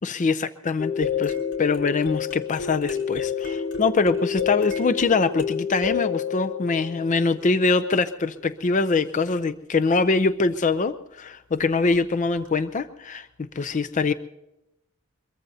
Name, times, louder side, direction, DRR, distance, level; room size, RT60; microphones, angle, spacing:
voice 1, 0.0-13.3 13.6-14.1, left 4 dB, 35° left, 12 dB, 0.5 m, -23 dB
sound 1, 0.8-7.7 11.9-12.0 12.5-12.6, left 7 dB, 60° left, 3.9 m, -29 dB
23.5 x 22.0 x 2.7 m, 0.89 s
head